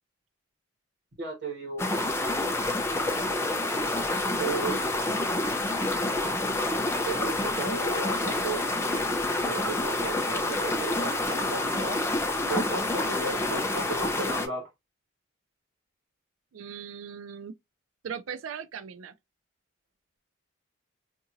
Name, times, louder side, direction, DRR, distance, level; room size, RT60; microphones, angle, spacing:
voice 1, 1.2-1.9 4.4-4.9 7.0-8.7 9.4-12.0 12.5-14.7, right 3 dB, 55° right, 1.3 m, -35 dB
sound 1, 1.8-14.5, left 2 dB, 15° left, 0.4 m, -28 dB
voice 2, 16.5-17.5 18.0-19.1, right 7 dB, 85° right, 0.4 m, -38 dB
2.8 x 2.6 x 2.5 m
head